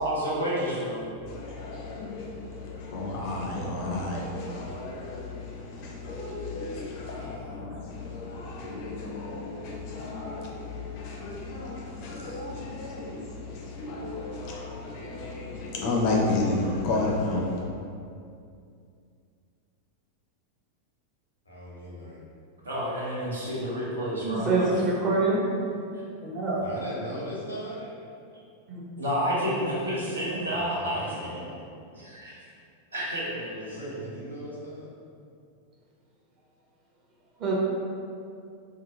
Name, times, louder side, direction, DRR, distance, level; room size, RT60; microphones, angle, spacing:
voice 1, 0.0-1.1 7.1-7.2 22.6-24.7 29.0-31.4 31.9-32.3 32.9-33.9, equal, 75° right, -7 dB, 0.7 m, -30 dB
voice 2, 1.2-17.6, left 2 dB, 45° left, -2 dB, 0.5 m, -32 dB
voice 3, 21.5-22.2 26.6-27.8 30.3-31.6 33.7-34.9, equal, 80° left, -6 dB, 0.7 m, -39 dB
voice 4, 24.2-25.4 26.2-26.6 28.7-28.8 37.4-37.5, right 3 dB, 35° right, -5 dB, 0.7 m, -25 dB
2.7 x 2.1 x 2.7 m, 2.4 s
figure-of-eight pair, 90°, 0 cm